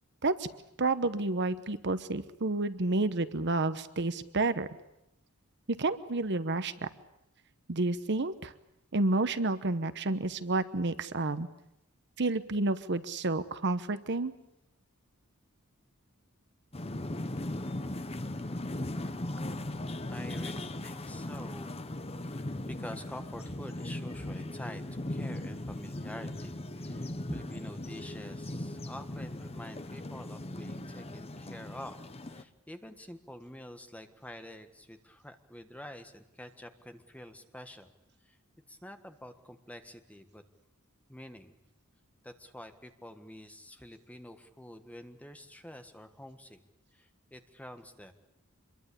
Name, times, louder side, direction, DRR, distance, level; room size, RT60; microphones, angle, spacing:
voice 1, 0.8-4.7 5.8-6.9 7.7-8.5 8.9-11.5 12.2-14.3, right 2 dB, 55° right, 13 dB, 1.1 m, -30 dB
sound 1, 16.7-32.4, left 1 dB, 30° left, 1.1 m, -38 dB
voice 2, 20.1-21.8 22.2-24.8 25.1-32.0 32.3-37.9 38.3-38.4 38.7-40.4 41.1-41.5 42.2-46.6 46.9-48.1, left 1 dB, 5° left, 7 dB, 1.5 m, -47 dB
25.5 x 22.5 x 8.5 m, 0.83 s
head